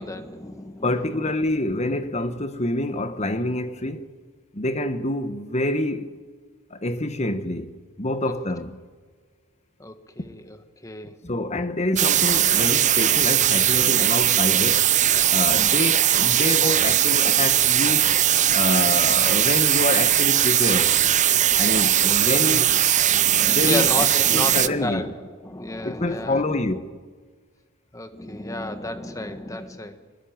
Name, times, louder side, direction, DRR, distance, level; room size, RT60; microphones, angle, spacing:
voice 1, 0.0-1.3 8.3-8.4 9.8-11.2 22.4-22.7 23.1-26.7 27.9-30.0, left 1 dB, 15° left, 1.5 m, -33 dB
voice 2, 0.8-4.1 4.5-6.1 6.7-8.8 11.2-14.9 15.3-18.2 18.5-21.0 21.6-22.7 23.5-25.1 25.8-26.9, left 2 dB, 30° left, 1.3 m, -27 dB
sound 1, 12.0-24.7, right 11 dB, 35° right, 0.6 m, -19 dB
24.0 x 20.5 x 8.8 m
head